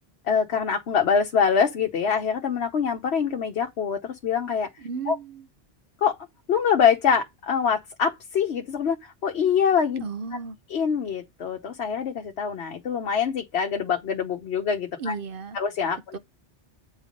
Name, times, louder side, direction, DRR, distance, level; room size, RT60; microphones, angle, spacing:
voice 1, 0.3-4.7 5.1-5.2 6.0-6.1 6.5-10.0 10.7-15.1 15.5-16.2, left 7 dB, 65° left, 1.1 m, -24 dB
voice 2, 4.8-5.5 10.0-10.6 15.0-15.6 16.1-16.2, right 5 dB, 55° right, 0.8 m, -34 dB
8.2 x 3.4 x 5.1 m
omnidirectional pair, 1.2 m